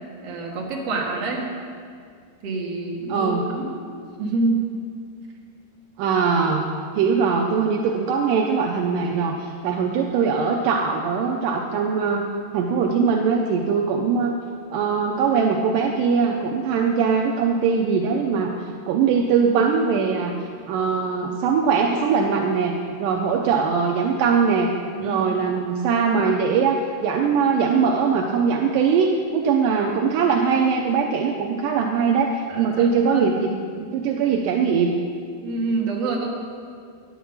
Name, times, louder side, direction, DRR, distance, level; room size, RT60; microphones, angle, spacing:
voice 1, 0.2-1.5 2.4-3.8 4.2-4.6 25.0-25.4 32.5-33.4 35.4-36.3, right 3 dB, 50° right, -2 dB, 2.1 m, -27 dB
voice 2, 3.1-3.4 6.0-6.7 7.0-14.3 14.7-18.5 18.9-20.4 20.7-24.7 25.0-33.5 33.8-35.0, right 5 dB, 80° right, 1 dB, 1.9 m, -21 dB
10.0 x 7.3 x 7.1 m, 2.2 s
omnidirectional pair, 4.4 m